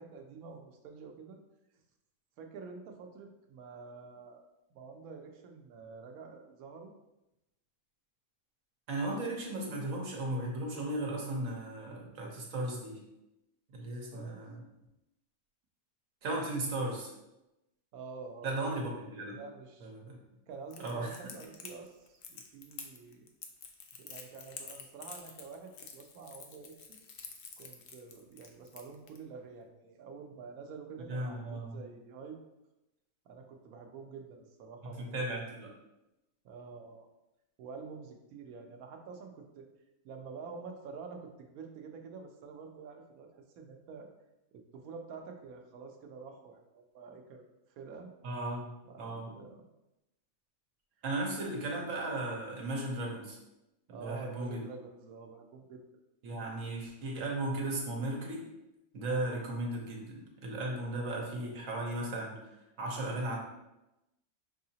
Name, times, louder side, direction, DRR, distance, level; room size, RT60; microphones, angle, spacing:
voice 1, 0.0-1.4 2.4-4.4 4.7-6.9 14.1-14.4 17.9-18.5 19.3-19.9 20.5-23.3 23.9-27.0 27.6-32.4 33.3-35.2 36.4-37.1 37.6-39.7 40.0-44.1 44.5-47.4 47.7-48.1 48.8-49.6 53.9-55.8, right 5 dB, 90° right, 4 dB, 1.1 m, -48 dB
voice 2, 8.9-13.0 13.7-14.6 16.2-17.1 18.4-19.4 19.8-20.2 20.8-21.2 31.1-31.8 34.8-35.7 48.2-49.3 51.0-53.4 53.9-54.6 56.2-58.4 58.9-62.4 62.8-63.4, right 2 dB, 65° right, -1 dB, 1.3 m, -36 dB
Crackle, 20.7-29.2, left 6 dB, 65° left, 0.7 m, -48 dB
5.5 x 2.7 x 2.8 m, 0.92 s
omnidirectional pair, 1.5 m